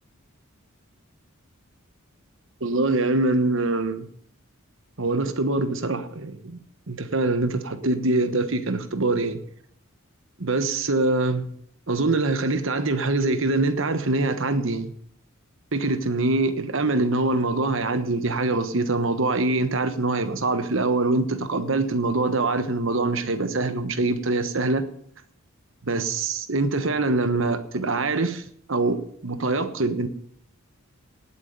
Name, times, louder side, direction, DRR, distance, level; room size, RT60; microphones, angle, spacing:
voice 1, 2.6-4.1 5.0-6.6 6.9-9.4 10.4-11.5 11.9-14.9 15.7-24.8 25.8-28.4 28.7-30.1, right 2 dB, 60° right, 10 dB, 1.2 m, -24 dB
18.0 x 8.5 x 5.3 m, 0.65 s
head